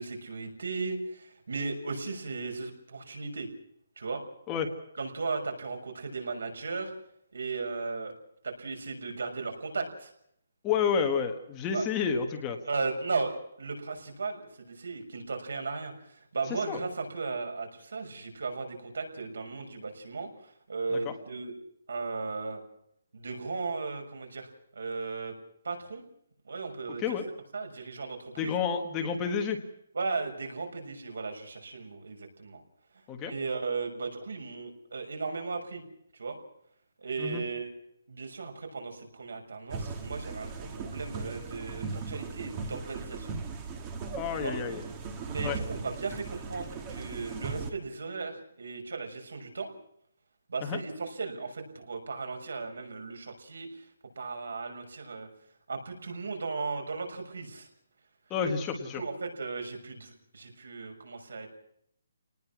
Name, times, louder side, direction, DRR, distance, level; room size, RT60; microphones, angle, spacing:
voice 1, 0.0-3.5 4.0-4.2 5.0-6.9 7.3-8.1 8.4-10.1 11.7-11.8 12.7-21.5 21.9-22.6 23.1-25.3 25.6-26.0 26.4-27.0 27.5-28.5 29.9-32.6 33.3-35.8 36.1-36.4 37.0-37.7 38.1-43.3 44.4-44.5 45.3-49.7 50.5-53.8 54.2-55.3 55.7-57.7 59.0-61.5, right 4 dB, 75° right, 5 dB, 6.5 m, -36 dB
voice 2, 10.6-12.6 16.5-16.8 20.9-21.1 26.9-27.2 28.4-29.6 33.1-33.3 37.2-37.4 44.2-44.8 45.4-45.6 50.6-50.8 58.3-59.0, left 6 dB, 10° left, 3 dB, 1.4 m, -30 dB
sound 1, 39.7-47.7, right 4 dB, 15° right, 1.4 m, -38 dB
26.5 x 19.5 x 6.1 m, 0.71 s
hypercardioid pair, 180°, 0 cm